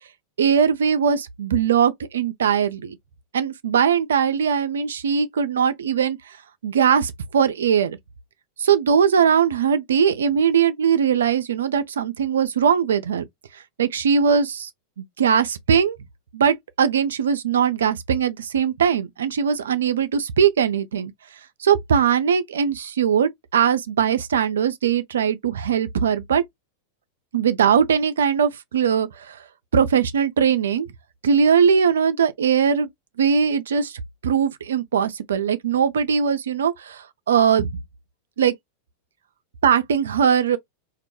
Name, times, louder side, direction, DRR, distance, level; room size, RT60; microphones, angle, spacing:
voice 1, 0.4-3.0 3.3-6.2 6.6-8.0 8.6-13.2 13.8-14.7 15.0-16.0 16.3-21.1 21.6-26.4 27.3-29.4 29.7-30.9 31.2-32.9 33.2-37.8 38.4-38.5 39.6-40.6, right 7 dB, 65° right, 0.3 m, -20 dB
2.2 x 2.1 x 2.8 m
figure-of-eight pair, 90°, 0 cm